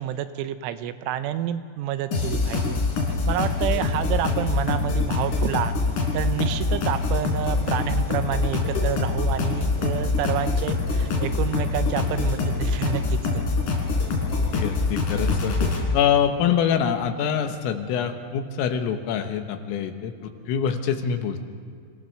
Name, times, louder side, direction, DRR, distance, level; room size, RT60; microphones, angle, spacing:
voice 1, 0.0-2.8 3.3-5.7 6.1-13.4, right 11 dB, 80° right, 10 dB, 3.2 m, -29 dB
sound 1, 2.1-15.8, left 3 dB, 45° left, 4.6 m, -24 dB
voice 2, 14.5-15.6 15.9-21.5, left 8 dB, 90° left, 6 dB, 4.0 m, -25 dB
26.0 x 17.5 x 6.7 m, 2.3 s
omnidirectional pair, 5.8 m